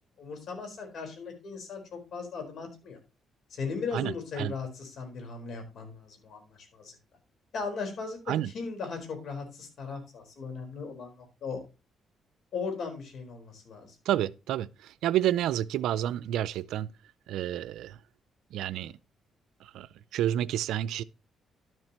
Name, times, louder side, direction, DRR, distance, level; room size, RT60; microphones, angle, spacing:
voice 1, 0.2-3.0 3.5-7.0 7.5-11.6 12.5-13.9, left 4 dB, 65° left, 4.3 m, -37 dB
voice 2, 3.9-4.5 8.3-8.5 14.1-16.9 17.3-18.0 18.5-19.0 19.6-19.9 20.1-21.0, right 12 dB, 85° right, 0.4 m, -30 dB
12.0 x 7.6 x 3.0 m
cardioid pair, 90°, 0 cm